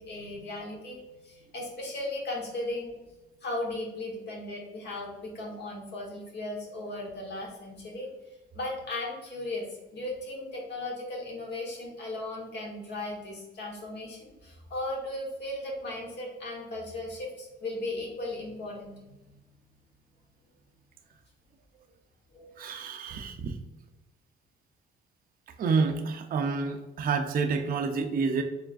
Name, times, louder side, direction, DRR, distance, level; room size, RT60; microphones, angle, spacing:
voice 1, 0.0-2.9 3.4-8.1 8.5-19.0 22.3-22.6, left 2 dB, 60° left, -1 dB, 1.1 m, -36 dB
voice 2, 22.6-23.5 25.6-28.4, right 4 dB, 45° right, 6 dB, 0.4 m, -28 dB
4.6 x 3.1 x 2.4 m, 1.0 s
cardioid pair, 90°, 20 cm